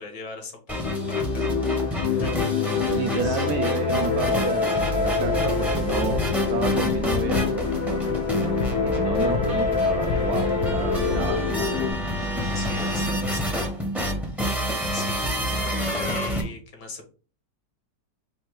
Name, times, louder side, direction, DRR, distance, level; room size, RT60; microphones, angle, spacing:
voice 1, 0.0-2.9 3.2-3.5 12.5-13.7 14.2-15.2 15.7-17.1, left 3 dB, 70° left, 3 dB, 1.8 m, -41 dB
sound 1, 0.7-11.9, left 5 dB, 85° left, 2.3 m, -26 dB
sound 2, 0.7-16.4, equal, ahead, 0.6 m, -28 dB
voice 2, 2.9-12.0, right 7 dB, 70° right, 6 dB, 0.9 m, -31 dB
sound 3, 4.9-11.3, left 3 dB, 50° left, 1.0 m, -33 dB
4.3 x 2.7 x 4.6 m, 0.38 s
omnidirectional pair, 1.9 m